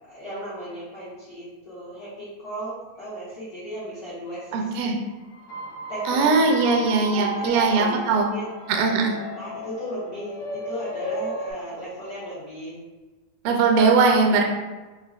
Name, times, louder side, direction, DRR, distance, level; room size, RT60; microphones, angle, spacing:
voice 1, 0.1-4.9 5.9-8.5 9.3-12.8 13.7-13.8 14.1-14.2, equal, 70° left, -12 dB, 1.0 m, -36 dB
voice 2, 4.5-5.0 6.1-8.3 8.7-9.2 13.4-14.4, right 4 dB, 80° right, 1 dB, 1.6 m, -20 dB
sound 1, 5.3-11.5, equal, 90° left, 1.3 m, -34 dB
5.4 x 2.0 x 2.4 m, 1.2 s
omnidirectional pair, 3.5 m